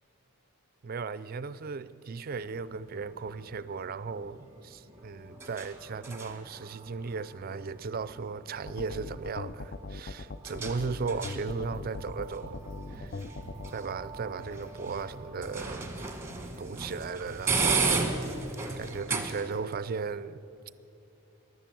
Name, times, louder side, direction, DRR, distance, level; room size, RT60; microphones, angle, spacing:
voice 1, 0.8-12.6 12.9-13.2 13.7-15.9 16.6-18.2 18.5-20.4, right 4 dB, 40° right, 0.4 m, -36 dB
sound 1, 2.3-19.8, right 4 dB, 10° right, 1.1 m, -36 dB
sound 2, 8.7-13.7, left 3 dB, 45° left, 0.4 m, -40 dB
sound 3, 11.5-19.0, right 2 dB, 90° left, 3.9 m, -47 dB
16.0 x 11.0 x 7.6 m
head